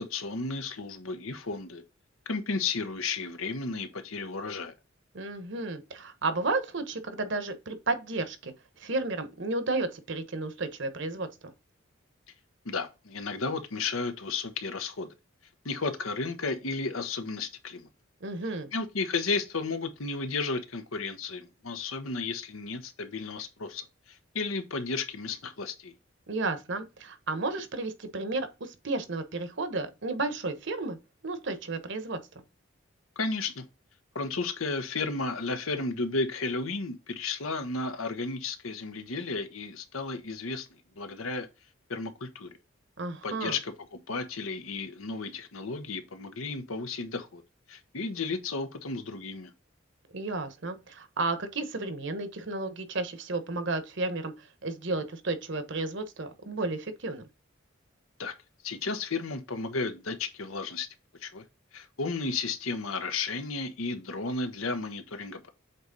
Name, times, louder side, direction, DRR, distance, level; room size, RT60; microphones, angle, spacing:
voice 1, 0.0-1.8 2.3-4.7 12.6-15.1 15.6-17.9 18.7-25.9 33.2-33.6 34.1-40.7 41.0-41.5 41.9-42.5 43.2-43.7 44.1-47.4 47.7-49.5 58.2-58.3 58.6-60.9 61.2-61.4 61.7-65.5, left 3 dB, 90° left, 1.1 m, -33 dB
voice 2, 5.1-11.5 18.2-18.7 26.3-31.0 31.2-32.2 43.0-43.6 50.1-57.2, right 3 dB, 60° right, 1.0 m, -32 dB
7.9 x 3.2 x 3.9 m
head